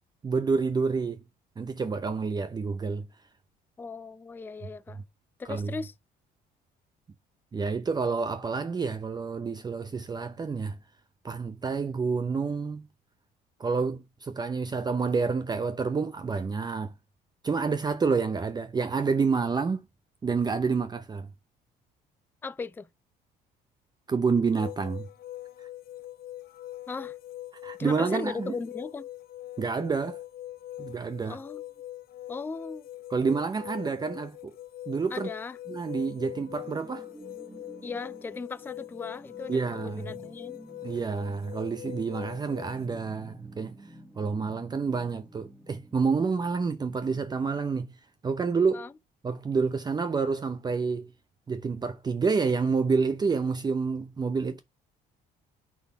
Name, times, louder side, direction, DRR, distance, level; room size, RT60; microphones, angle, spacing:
voice 1, 0.2-1.2 1.6-3.1 5.5-5.7 7.5-10.8 11.2-12.9 13.6-16.9 17.4-19.8 20.2-21.3 24.1-25.1 27.6-28.6 29.6-30.2 30.8-31.4 33.1-34.5 34.9-35.3 35.7-37.1 39.5-40.1 40.8-43.8 44.2-47.9 48.2-48.9 49.2-51.1 51.5-54.6, right 5 dB, 25° right, 0.7 m, -28 dB
voice 2, 3.8-5.0 5.4-5.9 22.4-22.9 26.9-27.2 27.8-29.1 31.3-31.6 32.3-32.9 35.1-35.6 37.8-40.6 48.7-48.9, left 4 dB, 10° left, 0.4 m, -37 dB
sound 1, 24.5-42.9, left 14 dB, 65° left, 0.8 m, -43 dB
sound 2, 35.6-47.7, equal, 5° right, 1.4 m, -51 dB
9.3 x 4.2 x 4.6 m
cardioid pair, 110°, 17 cm